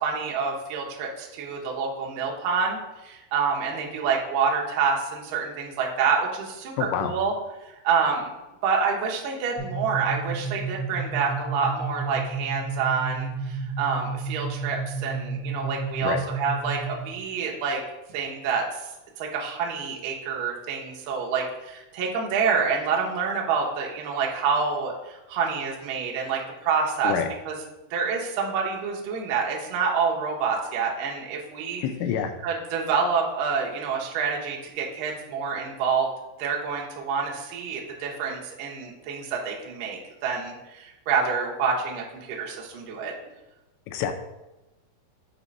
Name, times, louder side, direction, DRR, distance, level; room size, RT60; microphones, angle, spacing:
voice 1, 0.0-6.7 7.0-7.3 7.6-8.3 8.6-17.8 18.1-18.6 19.2-27.1 27.5-27.6 27.9-31.8 32.4-36.1 36.4-43.1, right 5 dB, 80° right, -2 dB, 1.9 m, -27 dB
voice 2, 6.8-7.1 16.0-16.2 27.0-27.3 31.8-32.3 43.9-44.1, left 8 dB, 80° left, 6 dB, 2.7 m, -27 dB
sound 1, 9.6-17.1, right 4 dB, 65° left, 1.5 m, -32 dB
7.2 x 3.0 x 5.3 m, 1.0 s
omnidirectional pair, 5.5 m